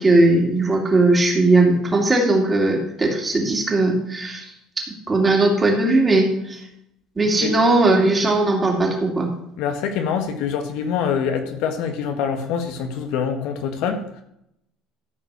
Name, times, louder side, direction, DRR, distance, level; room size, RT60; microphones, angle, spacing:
voice 1, 0.0-4.5 4.8-6.6 7.2-9.3, right 2 dB, 20° right, 0 dB, 2.7 m, -18 dB
voice 2, 9.6-14.2, left 7 dB, 70° left, 6 dB, 1.6 m, -25 dB
13.5 x 5.1 x 6.9 m, 0.77 s
cardioid pair, 130°, 0 cm